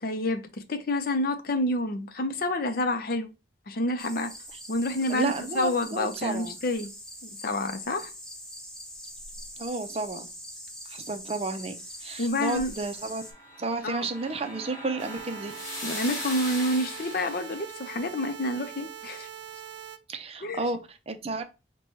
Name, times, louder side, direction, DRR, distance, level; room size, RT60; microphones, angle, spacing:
voice 1, 0.0-3.3 3.7-4.3 4.7-6.9 7.2-8.1 12.2-12.7 13.8-14.0 15.8-19.3 20.4-20.6, left 1 dB, 55° left, 0.6 m, -28 dB
sound 1, 4.0-13.3, equal, 5° left, 0.7 m, -43 dB
voice 2, 5.1-6.6 9.6-10.3 10.9-11.7 12.0-13.2 13.6-15.5 20.1-21.4, right 3 dB, 35° right, 0.5 m, -32 dB
sound 2, 13.0-17.6, left 1 dB, 20° left, 2.3 m, -39 dB
sound 3, 15.0-20.0, right 9 dB, 85° right, 0.4 m, -42 dB
5.3 x 2.2 x 3.1 m
head